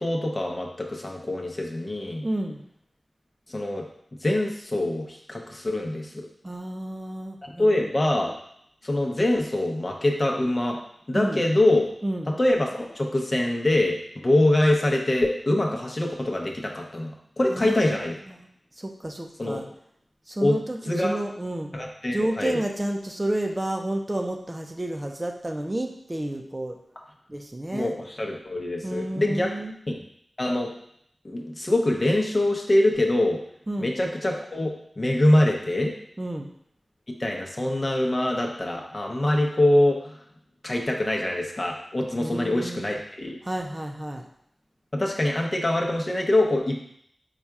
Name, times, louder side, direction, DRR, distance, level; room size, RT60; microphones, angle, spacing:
voice 1, 0.0-2.2 3.5-3.9 4.2-6.1 7.4-8.4 8.8-10.8 11.1-11.9 12.3-18.1 19.4-19.6 20.4-20.6 20.9-21.2 21.7-22.6 27.7-29.5 29.9-30.0 30.4-30.7 31.2-33.4 33.8-35.9 37.2-40.2 40.6-43.4 44.9-46.8, left 1 dB, 40° left, 1 dB, 0.8 m, -24 dB
voice 2, 2.2-2.6 6.4-7.9 11.1-11.4 12.0-12.3 17.5-17.8 18.3-18.4 18.7-19.7 20.3-21.7 22.1-26.8 27.3-27.9 28.8-29.7 33.7-33.9 36.2-36.5 42.2-42.9 43.4-44.2, right 1 dB, 25° right, 3 dB, 0.5 m, -30 dB
4.1 x 2.4 x 4.6 m, 0.70 s
cardioid pair, 40°, 0 cm